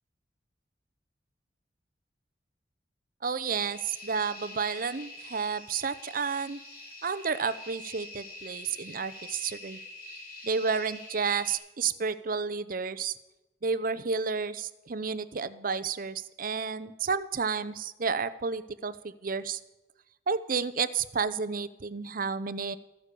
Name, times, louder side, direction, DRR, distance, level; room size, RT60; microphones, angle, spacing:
voice 1, 3.2-6.6 7.0-9.8 10.4-13.1 13.6-19.6 20.3-22.8, right 5 dB, 50° right, 14 dB, 0.7 m, -31 dB
sound 1, 3.5-11.6, left 2 dB, 60° left, 4.8 m, -45 dB
14.0 x 10.0 x 6.8 m, 1.0 s
head